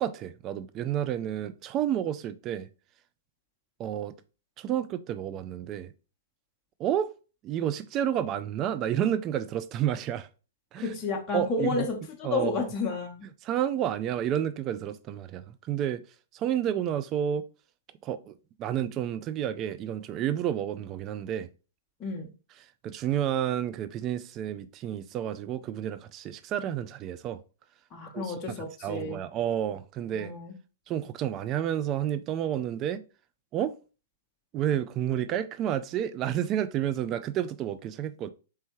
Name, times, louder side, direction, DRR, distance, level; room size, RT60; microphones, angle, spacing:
voice 1, 0.0-2.7 3.8-4.1 4.6-5.9 6.8-7.1 7.4-10.3 10.7-11.0 11.3-11.9 12.2-12.7 13.4-16.0 16.3-17.5 18.0-21.5 22.8-27.4 28.1-30.3 30.9-33.0 33.5-33.7 34.5-38.3, right 10 dB, 30° right, 0.3 m, -30 dB
voice 2, 10.8-13.3 22.0-22.3 27.9-29.2 30.1-30.5, left 3 dB, 25° left, 0.8 m, -31 dB
4.4 x 3.2 x 2.9 m
figure-of-eight pair, 110°, 0 cm